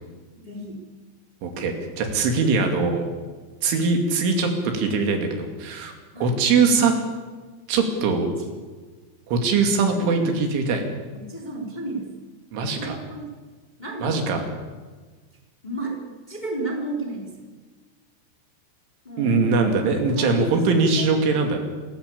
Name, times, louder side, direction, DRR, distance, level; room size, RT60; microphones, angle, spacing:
voice 1, 0.3-0.9 6.1-6.4 9.5-10.4 11.1-12.2 12.7-13.2 13.8-14.2 15.6-16.0 16.3-17.3 19.0-19.4 20.1-20.5 21.0-21.2, right 2 dB, 10° left, 1 dB, 2.9 m, -33 dB
voice 2, 1.4-3.0 3.6-5.9 6.2-6.9 7.7-8.3 9.3-10.8 12.5-13.0 14.0-14.5 19.2-21.6, right 4 dB, 80° right, 4 dB, 5.0 m, -21 dB
27.5 x 14.5 x 8.5 m, 1.4 s
omnidirectional pair, 5.5 m